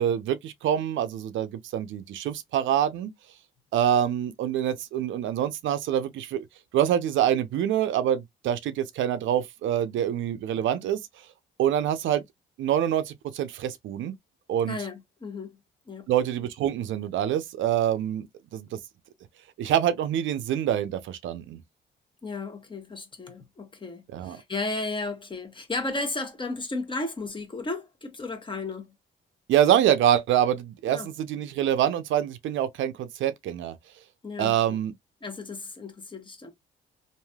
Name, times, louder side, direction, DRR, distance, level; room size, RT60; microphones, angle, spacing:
voice 1, 0.0-3.1 3.7-6.4 6.7-11.0 11.6-12.2 12.6-14.1 14.5-14.8 16.1-18.3 18.5-18.7 19.6-21.6 24.1-24.4 29.5-33.8 34.4-34.9, right 10 dB, 75° right, 0.5 m, -25 dB
voice 2, 14.7-15.6 15.9-16.1 22.2-28.9 30.9-31.1 34.2-34.8 35.2-36.5, left 3 dB, 25° left, 1.0 m, -34 dB
3.2 x 2.6 x 2.2 m
cardioid pair, 90°, 20 cm